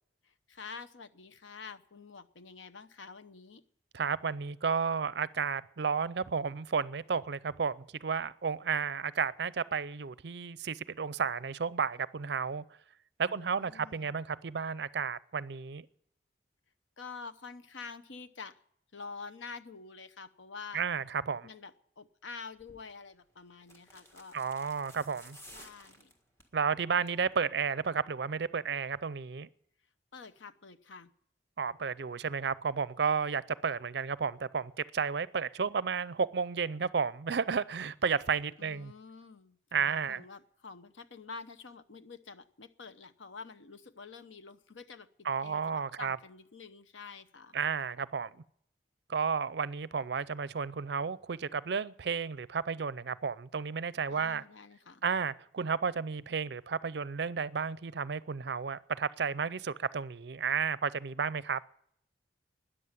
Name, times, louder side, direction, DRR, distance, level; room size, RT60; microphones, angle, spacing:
voice 1, 0.2-3.6 13.2-14.1 17.0-18.6 18.9-20.8 21.4-24.4 25.5-26.1 30.1-31.1 38.6-47.6 54.1-55.0, left 4 dB, 85° left, 0.9 m, -48 dB
voice 2, 3.9-12.6 13.2-15.9 20.7-21.5 24.3-25.4 26.5-29.5 31.6-38.9 39.7-40.2 45.2-46.2 47.5-48.3 49.1-54.4 55.0-61.6, right 6 dB, 65° right, 0.5 m, -32 dB
sound 1, 22.6-22.8 23.6-26.5 26.9-27.3 27.5-27.6, equal, 15° left, 1.6 m, -54 dB
13.5 x 10.0 x 9.6 m
head